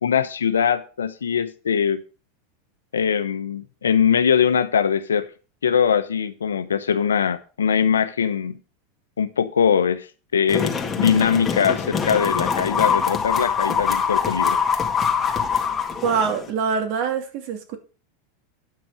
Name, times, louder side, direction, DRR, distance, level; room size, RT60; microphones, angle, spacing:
voice 1, 0.0-2.0 2.9-5.3 5.6-8.6 9.2-10.1 10.3-14.6, left 7 dB, 90° left, 12 dB, 0.9 m, -21 dB
sound 1, 10.5-16.5, left 6 dB, 25° left, 1.9 m, -23 dB
voice 2, 16.0-17.8, right 6 dB, 55° right, 5 dB, 2.6 m, -24 dB
9.6 x 6.2 x 4.9 m, 0.34 s
hypercardioid pair, 100°, 0 cm